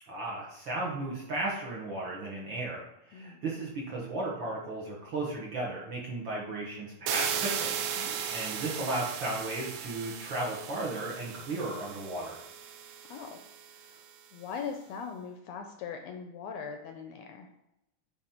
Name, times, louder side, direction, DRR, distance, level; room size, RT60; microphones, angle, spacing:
voice 1, 0.1-12.4, right 2 dB, 55° right, -4 dB, 1.5 m, -35 dB
sound 1, 7.1-13.9, right 8 dB, 80° right, 1.7 m, -36 dB
voice 2, 14.3-17.5, left 6 dB, 80° left, 4 dB, 1.6 m, -40 dB
9.1 x 3.2 x 4.3 m, 0.87 s
omnidirectional pair, 3.4 m